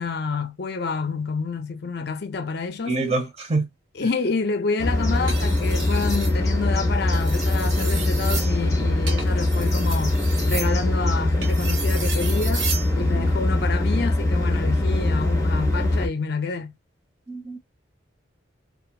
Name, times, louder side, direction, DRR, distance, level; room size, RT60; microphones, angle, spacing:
voice 1, 0.0-3.0 3.9-16.7, left 4 dB, 55° left, 0.5 m, -28 dB
voice 2, 2.8-3.7 13.1-13.3 17.3-17.6, right 3 dB, 30° right, 0.9 m, -26 dB
sound 1, 4.8-16.1, left 1 dB, 15° left, 0.9 m, -22 dB
sound 2, 5.1-6.4 7.0-12.9 14.4-14.6, right 4 dB, 65° right, 1.1 m, -34 dB
2.9 x 2.4 x 2.2 m
head